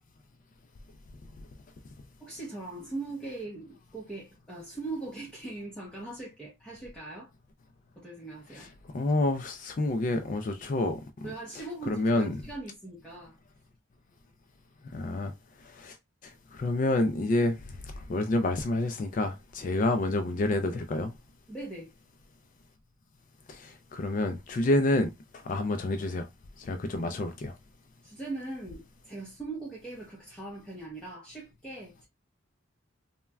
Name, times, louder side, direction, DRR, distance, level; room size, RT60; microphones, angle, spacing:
voice 1, 2.2-7.3 8.0-8.7 10.6-10.7 11.2-13.3 21.5-21.9 28.0-32.1, right 2 dB, 5° left, 0.8 m, -40 dB
voice 2, 8.9-11.0 11.9-12.3 14.9-15.3 15.8-15.9 16.5-17.6 18.1-21.1 23.5-25.1 25.5-26.3 26.6-27.5, left 2 dB, 40° left, 0.3 m, -28 dB
3.2 x 2.2 x 2.2 m
head